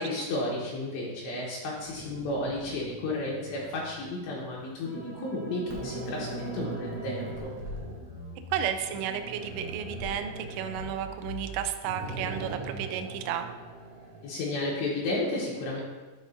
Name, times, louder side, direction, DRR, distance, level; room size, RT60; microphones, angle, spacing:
voice 1, 0.0-7.5 14.2-15.8, left 2 dB, 75° left, -5 dB, 3.1 m, -33 dB
sound 1, 1.8-4.6 5.2-5.3 5.7-8.0 8.8-11.7 12.0-14.3, right 2 dB, 70° right, 2.6 m, -42 dB
sound 2, 4.8-8.6 9.4-13.0, right 1 dB, 25° left, 1.5 m, -41 dB
voice 2, 8.5-13.5, right 9 dB, 85° right, 7 dB, 3.0 m, -32 dB
12.0 x 4.9 x 2.6 m, 1.3 s
omnidirectional pair, 5.4 m